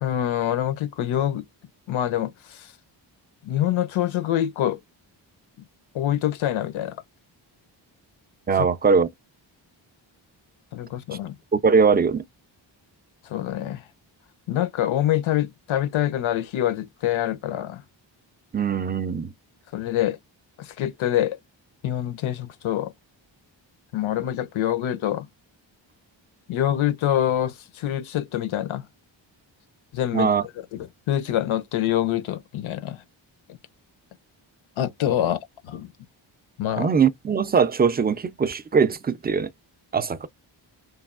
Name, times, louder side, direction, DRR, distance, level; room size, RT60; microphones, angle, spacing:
voice 1, 0.0-1.5 1.9-2.7 3.4-4.8 5.9-7.0 8.6-8.7 10.7-11.3 13.2-13.9 14.5-17.8 19.7-20.2 20.6-21.4 21.8-22.9 23.9-25.3 26.5-28.9 29.9-30.3 30.7-33.0 34.8-35.4 35.6-35.9 36.6-36.9, left 12 dB, 80° left, 0.6 m, -25 dB
voice 2, 8.5-9.1 11.6-12.2 18.5-19.3 30.1-30.4 36.8-39.5 39.9-40.3, right 6 dB, 20° right, 0.4 m, -21 dB
3.2 x 2.2 x 2.4 m
cardioid pair, 65°, 47 cm